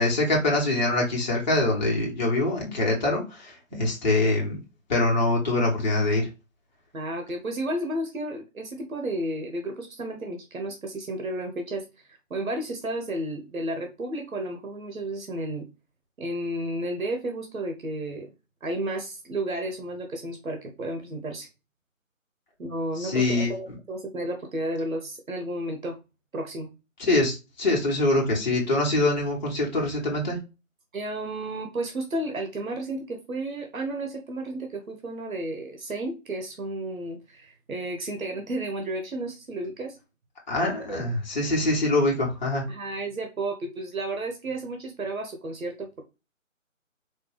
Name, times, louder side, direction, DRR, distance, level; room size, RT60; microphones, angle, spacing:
voice 1, 0.0-4.6 4.9-6.3 23.0-23.5 27.1-30.4 40.5-42.7, left 2 dB, 35° left, 1.0 m, -24 dB
voice 2, 6.9-15.7 16.2-18.3 18.6-21.5 22.6-26.0 26.3-26.7 30.9-40.0 40.6-41.1 42.7-46.0, right 1 dB, 80° right, 1.0 m, -32 dB
4.4 x 2.2 x 3.0 m
figure-of-eight pair, 145°, 41 cm